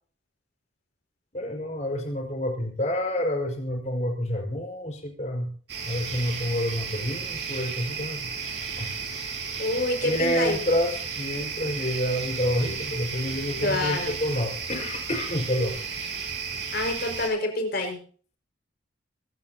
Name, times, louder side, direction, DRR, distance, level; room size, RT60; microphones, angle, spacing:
voice 1, 1.3-5.5 5.8-8.3 8.8-8.9 10.0-16.1, equal, 35° left, 3 dB, 5.2 m, -28 dB
sound 1, 5.7-17.3, right 5 dB, 60° right, 5.3 m, -34 dB
voice 2, 9.6-10.6 13.6-14.2 16.7-18.0, left 2 dB, 55° left, 3 dB, 5.5 m, -27 dB
25.5 x 12.0 x 2.9 m, 0.42 s
head